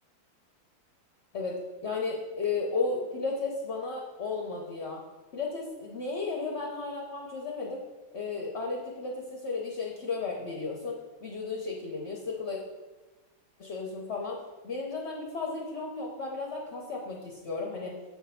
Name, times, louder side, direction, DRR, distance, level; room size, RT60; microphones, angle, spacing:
voice 1, 1.3-5.0 5.3-7.8 8.1-12.6 13.6-14.4 14.6-17.9, left 4 dB, 45° left, -1 dB, 0.9 m, -34 dB
7.4 x 3.6 x 5.7 m, 1.2 s
omnidirectional pair, 2.2 m